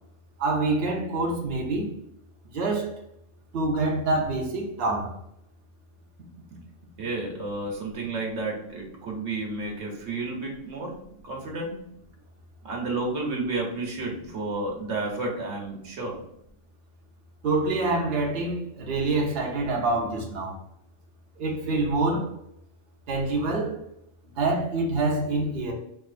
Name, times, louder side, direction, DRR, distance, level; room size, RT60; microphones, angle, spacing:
voice 1, 0.4-1.9 2.5-2.9 3.5-5.2 17.4-20.5 21.4-22.4 23.1-23.8 24.4-25.7, right 2 dB, 55° right, 0.9 m, -26 dB
voice 2, 7.0-11.8 12.6-16.2, right 2 dB, 75° right, 1.2 m, -31 dB
4.7 x 2.9 x 2.4 m
omnidirectional pair, 1.3 m